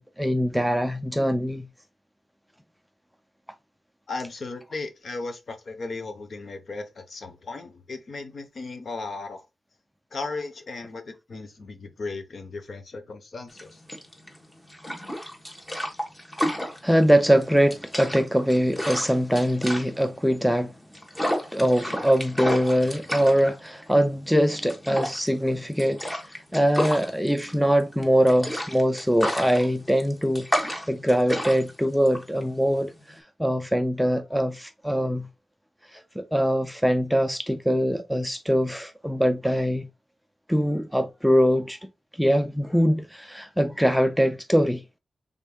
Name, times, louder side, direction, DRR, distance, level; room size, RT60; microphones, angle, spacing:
voice 1, 0.0-1.7 16.8-20.7 21.5-26.0 26.3-32.9 33.4-35.3 35.9-39.9 40.5-41.8 42.2-44.8, equal, ahead, 0.4 m, -23 dB
voice 2, 4.1-9.4 10.1-13.8, left 3 dB, 55° left, 0.9 m, -36 dB
sound 1, 13.5-33.2, equal, 15° left, 1.2 m, -32 dB
5.3 x 3.6 x 2.2 m
wide cardioid pair, 145°, 0 cm